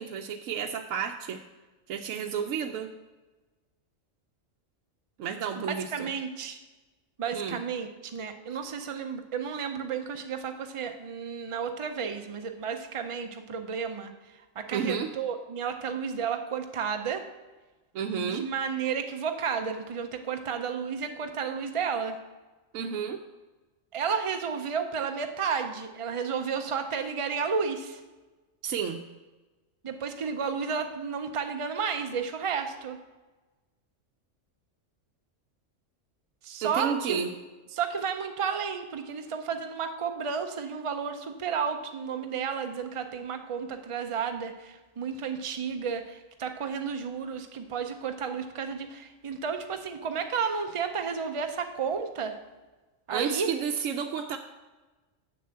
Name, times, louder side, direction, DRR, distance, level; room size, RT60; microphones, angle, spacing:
voice 1, 0.0-1.4 1.9-2.9 5.2-6.1 7.3-7.6 14.7-15.1 17.9-18.5 22.7-23.2 28.6-29.0 36.6-37.3 53.1-54.4, right 7 dB, 80° right, 4 dB, 0.9 m, -31 dB
voice 2, 5.7-6.6 7.2-14.1 14.6-17.2 18.1-22.2 23.9-28.0 29.8-33.0 36.4-37.2 37.7-52.4 53.1-53.5, right 6 dB, 55° right, 6 dB, 0.3 m, -32 dB
7.0 x 6.8 x 7.5 m, 1.2 s
omnidirectional pair, 1.3 m